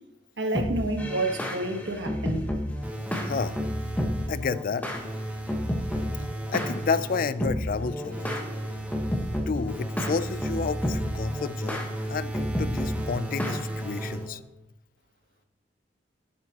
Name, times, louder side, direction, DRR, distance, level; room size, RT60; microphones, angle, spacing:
voice 1, 0.4-2.5, right 2 dB, 85° right, 1.4 m, -29 dB
sound 1, 0.5-14.3, equal, 10° left, 1.3 m, -32 dB
sound 2, 2.8-4.5 4.9-7.4 8.1-14.5, right 1 dB, 10° right, 1.0 m, -36 dB
voice 2, 3.2-3.6 4.3-4.8 6.5-8.3 9.5-14.4, left 5 dB, 50° left, 0.4 m, -30 dB
11.0 x 9.9 x 3.0 m
head